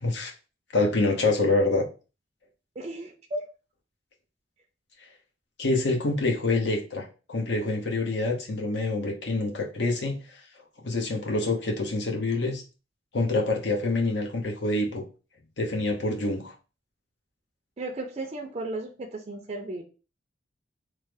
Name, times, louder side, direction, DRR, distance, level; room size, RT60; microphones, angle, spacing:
voice 1, 0.0-0.3 0.7-1.8 5.6-10.2 10.8-12.6 13.1-15.0 15.6-16.5, left 2 dB, 70° left, 1 dB, 0.8 m, -26 dB
voice 2, 2.8-3.4 17.8-19.8, right 2 dB, 35° right, 2 dB, 0.4 m, -34 dB
3.1 x 2.0 x 3.4 m, 0.33 s
head